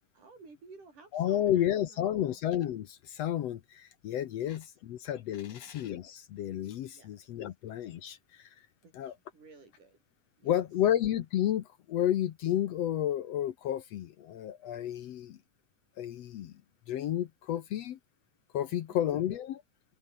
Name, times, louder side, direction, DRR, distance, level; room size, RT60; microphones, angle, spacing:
voice 1, 0.1-2.4 4.4-4.5 5.5-5.7 6.9-7.1 8.8-10.0 10.4-10.5 18.9-19.2, right 4 dB, 80° right, 8.8 m, -54 dB
voice 2, 1.1-8.5 8.9-9.1 10.4-15.4 16.0-16.5 16.9-18.0 18.5-19.6, left 11 dB, 65° left, 1.9 m, -31 dB
open air
omnidirectional pair, 3.6 m